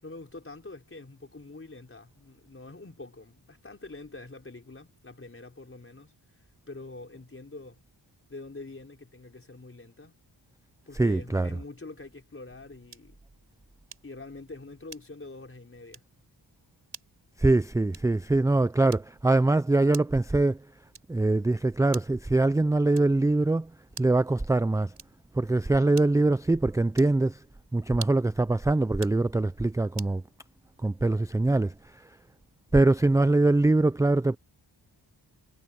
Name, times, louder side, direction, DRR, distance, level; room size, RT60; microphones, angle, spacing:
voice 1, 0.0-7.8 8.3-10.2 10.9-13.2 14.0-16.0, left 3 dB, 30° left, 4.3 m, -45 dB
voice 2, 11.0-11.5 17.4-20.6 21.1-23.7 24.0-24.9 25.3-27.4 27.7-30.2 30.8-32.1 32.7-34.4, right 2 dB, 10° right, 0.3 m, -23 dB
sound 1, 12.9-13.2 13.9-14.2 14.9-15.3 15.9-16.2 16.9-17.2 17.9-18.2 18.9-19.3 19.9-20.3 20.9-21.3 21.9-22.3 22.9-23.3 23.9-24.3 24.9-25.3 25.9-26.3 26.9-27.2 27.9-28.4 28.9-29.2 30.0-30.2, right 6 dB, 70° right, 7.1 m, -46 dB
wide cardioid pair, 80°, 44 cm